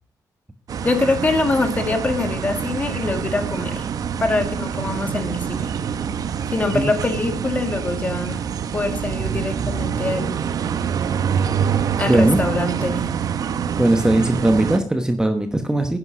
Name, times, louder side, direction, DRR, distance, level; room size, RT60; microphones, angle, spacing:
sound 1, 0.7-14.8, right 7 dB, 55° right, 0.8 m, -25 dB
voice 1, 0.8-3.9 4.2-5.7 6.5-8.4 8.7-10.4 12.0-13.1, left 2 dB, 20° left, 7 dB, 1.9 m, -24 dB
voice 2, 12.1-12.4 13.8-16.0, right 1 dB, 10° right, 6 dB, 1.0 m, -19 dB
11.0 x 9.9 x 6.1 m, 0.43 s
wide cardioid pair, 155°, 7 cm